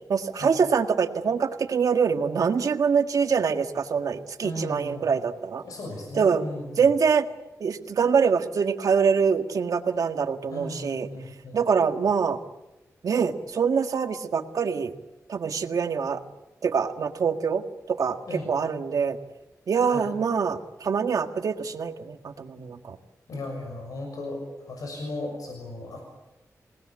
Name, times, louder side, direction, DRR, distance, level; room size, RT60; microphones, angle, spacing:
voice 1, 0.1-5.6 6.2-6.4 6.8-7.3 7.6-11.1 11.5-12.4 13.0-14.9 15.3-16.2 16.6-18.2 18.5-19.2 19.7-23.0, right 6 dB, 80° right, 6 dB, 1.8 m, -24 dB
voice 2, 4.4-5.1 5.6-6.9 10.5-11.6 18.3-18.5 19.9-20.0 23.3-26.0, left 1 dB, 85° left, 2 dB, 6.6 m, -36 dB
28.0 x 19.0 x 8.7 m, 1.0 s
wide cardioid pair, 90°, 6 cm